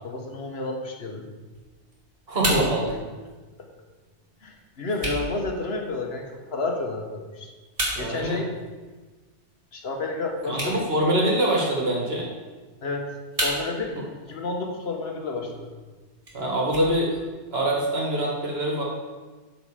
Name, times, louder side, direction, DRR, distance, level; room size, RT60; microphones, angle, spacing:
voice 1, 0.0-1.3 4.4-7.5 8.0-8.5 9.7-10.8 12.8-13.1 13.4-15.7, left 3 dB, 65° left, 2 dB, 1.3 m, -31 dB
sound 1, 1.5-17.5, right 1 dB, 30° right, 2.4 m, -37 dB
voice 2, 2.3-2.9 8.0-8.4 10.4-12.3 13.9-14.0 16.3-17.2 17.5-18.8, right 1 dB, 60° right, -2 dB, 2.0 m, -24 dB
12.5 x 4.3 x 4.9 m, 1.3 s
omnidirectional pair, 1.2 m